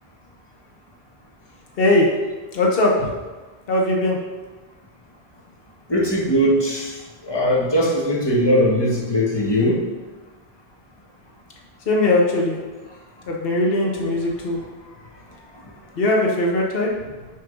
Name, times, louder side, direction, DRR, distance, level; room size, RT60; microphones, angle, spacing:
voice 1, 1.8-2.1 2.5-3.1 3.7-4.2 11.9-12.6 13.3-14.6 15.9-17.1, left 2 dB, 65° left, -1 dB, 1.3 m, -20 dB
voice 2, 5.9-6.9 7.3-9.8, equal, 25° left, -4 dB, 1.5 m, -19 dB
6.7 x 4.2 x 5.3 m, 1.3 s
omnidirectional pair, 1.1 m